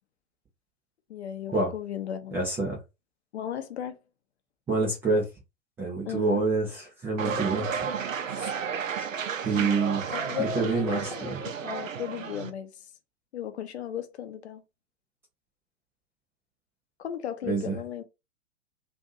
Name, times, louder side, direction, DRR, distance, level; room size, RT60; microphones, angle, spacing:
voice 1, 1.1-2.4 3.3-4.0 6.0-6.4 9.6-9.8 10.1-12.7 13.3-14.6 17.0-18.0, left 10 dB, 55° left, 0.7 m, -36 dB
voice 2, 2.3-2.8 4.7-5.3 5.8-7.7 8.3-8.5 9.4-10.0 10.4-11.4 17.5-17.8, right 3 dB, 5° right, 0.4 m, -27 dB
sound 1, 7.2-12.5, right 6 dB, 80° right, 0.6 m, -32 dB
2.6 x 2.5 x 3.8 m
figure-of-eight pair, 110°, 39 cm